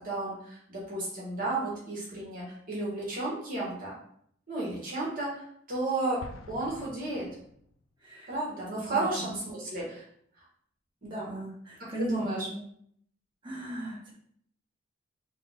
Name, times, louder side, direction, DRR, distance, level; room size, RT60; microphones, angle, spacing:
voice 1, 0.0-3.9 4.5-7.3 8.3-10.0 10.4-10.5 11.0-11.3 12.0-12.5, right 2 dB, 45° right, -5 dB, 1.6 m, -33 dB
Explosion, 6.2-8.0, left 3 dB, 80° left, 0.4 m, -48 dB
voice 2, 8.0-8.3 8.9-9.3 11.0-12.6 13.4-14.1, right 1 dB, 25° right, -4 dB, 1.4 m, -36 dB
5.0 x 2.3 x 3.6 m, 0.66 s
head